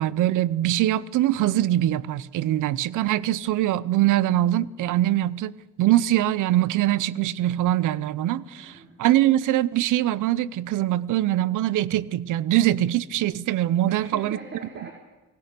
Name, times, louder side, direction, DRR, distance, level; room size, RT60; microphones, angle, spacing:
voice 1, 0.0-14.4, right 13 dB, 85° right, 0.8 m, -23 dB
voice 2, 8.5-9.0 13.9-14.9, right 3 dB, 35° right, 3.7 m, -41 dB
29.5 x 16.5 x 6.8 m
cardioid pair, 90°, 30 cm